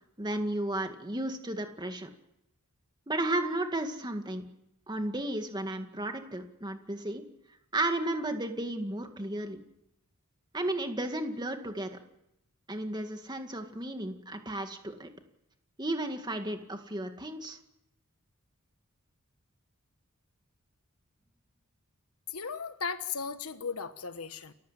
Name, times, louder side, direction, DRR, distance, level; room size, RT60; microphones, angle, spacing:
voice 1, 0.2-2.1 3.1-4.4 4.9-7.2 7.7-9.6 10.5-11.9 12.7-15.1 15.8-17.6, right 1 dB, 20° right, 2.1 m, -33 dB
voice 2, 22.3-24.5, left 5 dB, 80° left, 1.3 m, -36 dB
29.5 x 14.5 x 7.6 m
head